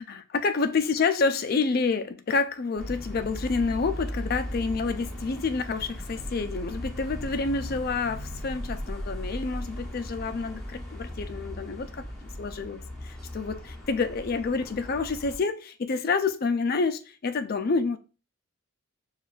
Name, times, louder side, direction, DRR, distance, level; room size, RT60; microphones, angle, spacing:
voice 1, 0.0-12.0 12.4-18.0, left 4 dB, 45° left, 0.4 m, -28 dB
sound 1, 2.8-15.4, equal, 5° left, 0.8 m, -37 dB
6.8 x 2.4 x 2.3 m
head